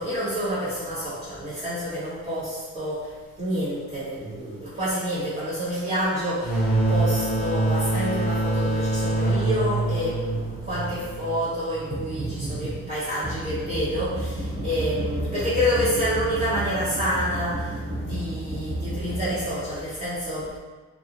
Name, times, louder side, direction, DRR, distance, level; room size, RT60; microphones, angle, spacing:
voice 1, 0.0-6.6 6.9-20.6, equal, 30° right, -13 dB, 1.1 m, -27 dB
sound 1, 6.4-11.9, right 2 dB, ahead, 1.3 m, -25 dB
2.6 x 2.3 x 2.8 m, 1.4 s
cardioid pair, 90°, 30 cm